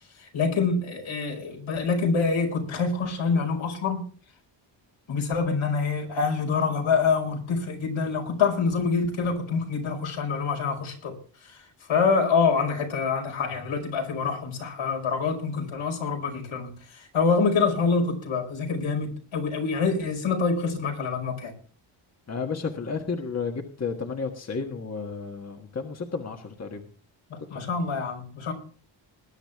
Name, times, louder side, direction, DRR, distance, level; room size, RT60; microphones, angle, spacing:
voice 1, 0.2-4.0 5.1-11.1 11.4-21.5 27.3-28.5, left 5 dB, 75° left, 5.4 m, -26 dB
voice 2, 22.3-26.8 27.5-27.8, left 5 dB, 30° left, 1.5 m, -32 dB
20.5 x 10.5 x 3.5 m
wide cardioid pair, 125°, 49 cm